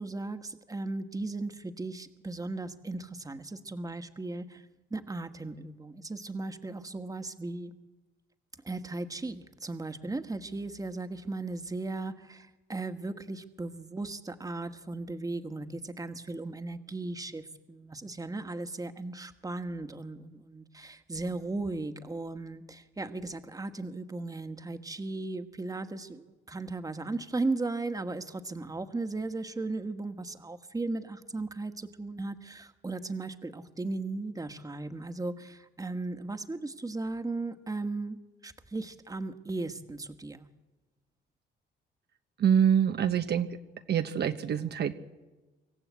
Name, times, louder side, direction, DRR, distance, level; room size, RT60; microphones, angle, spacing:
voice 1, 0.0-4.6 4.9-7.8 8.6-38.2 38.4-40.5, right 2 dB, 15° right, 9 dB, 1.6 m, -36 dB
voice 2, 42.4-43.5 43.9-44.9, right 8 dB, 55° right, 9 dB, 1.0 m, -25 dB
25.5 x 14.5 x 8.4 m, 1.2 s
cardioid pair, 90°, 20 cm